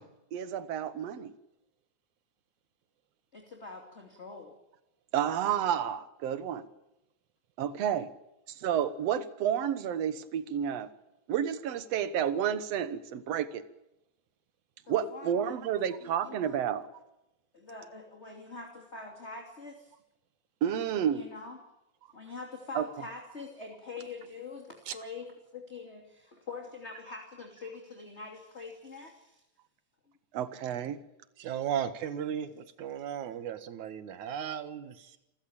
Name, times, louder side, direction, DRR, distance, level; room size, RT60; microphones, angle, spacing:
voice 1, 0.3-1.3 5.1-6.6 7.6-8.1 8.6-10.9 11.3-13.6 14.9-16.8 20.6-21.3 22.8-22.9 30.3-31.0, right 9 dB, 65° right, 13 dB, 2.3 m, -30 dB
voice 2, 3.3-4.5 14.9-16.6 17.5-19.9 21.1-21.6 22.1-25.3 25.5-29.4, left 4 dB, 25° left, 1 dB, 2.9 m, -44 dB
voice 3, 31.4-35.2, right 9 dB, 85° right, 12 dB, 2.8 m, -35 dB
27.5 x 15.0 x 8.8 m, 0.90 s
omnidirectional pair, 3.3 m